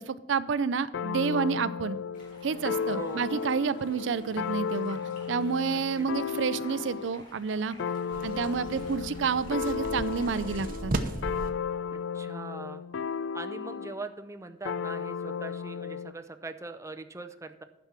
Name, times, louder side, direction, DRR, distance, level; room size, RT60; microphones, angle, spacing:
voice 1, 0.0-2.0 2.4-5.0 5.3-7.8 8.2-10.9, right 5 dB, 80° right, 16 dB, 0.4 m, -29 dB
sound 1, 0.9-7.1 7.8-14.0 14.6-16.1, left 6 dB, 90° left, 0.4 m, -34 dB
Stream, 2.1-10.7, left 1 dB, 45° left, 4.0 m, -52 dB
voice 2, 2.8-3.3 5.7-6.1 11.9-12.8 13.3-17.6, right 3 dB, 15° right, 7 dB, 0.5 m, -41 dB
sound 2, 8.1-11.5, right 2 dB, 50° right, 0.8 m, -36 dB
10.0 x 6.0 x 5.8 m, 1.0 s
head